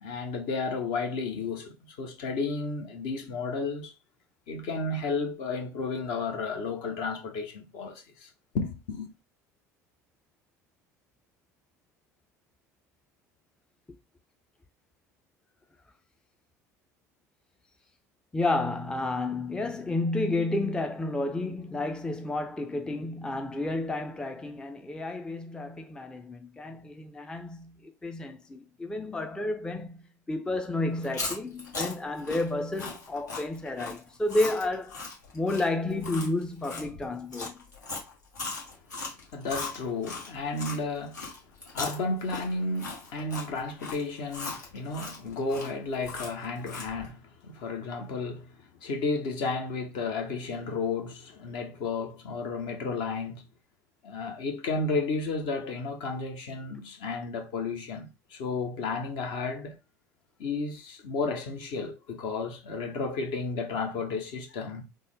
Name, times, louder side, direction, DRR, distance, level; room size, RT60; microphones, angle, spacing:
voice 1, 0.0-3.9 4.5-8.3 8.5-9.1 39.3-41.3 41.7-53.4 54.0-59.8 60.4-64.8, left 3 dB, 60° left, 0.8 m, -32 dB
voice 2, 18.3-35.0 35.3-37.5, left 2 dB, 10° left, 0.4 m, -31 dB
Chewing mastication, 31.0-40.8 41.1-47.1, left 3 dB, 85° left, 1.2 m, -38 dB
3.6 x 2.2 x 3.2 m
figure-of-eight pair, 65°, 9 cm